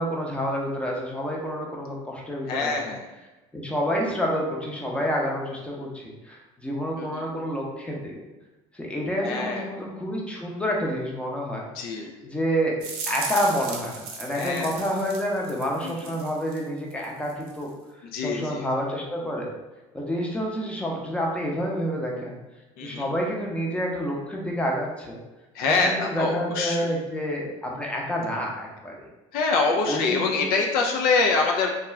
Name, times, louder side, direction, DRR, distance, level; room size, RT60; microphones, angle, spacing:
voice 1, 0.0-2.7 3.5-8.2 8.7-11.6 12.0-12.8 13.1-17.7 18.2-19.5 19.9-22.4 22.8-25.2 25.7-29.1 29.9-30.4, equal, 5° left, -2 dB, 0.7 m, -28 dB
voice 2, 2.5-3.1 6.9-7.2 9.2-9.7 11.7-12.3 14.3-14.8 15.8-16.1 18.0-18.7 22.8-23.1 25.5-27.0 29.3-31.8, left 4 dB, 65° left, 1 dB, 0.4 m, -25 dB
sound 1, 12.8-16.6 16.9-17.7, right 4 dB, 65° right, 0.6 m, -36 dB
2.3 x 2.3 x 3.1 m, 1.1 s
hypercardioid pair, 80°, 17 cm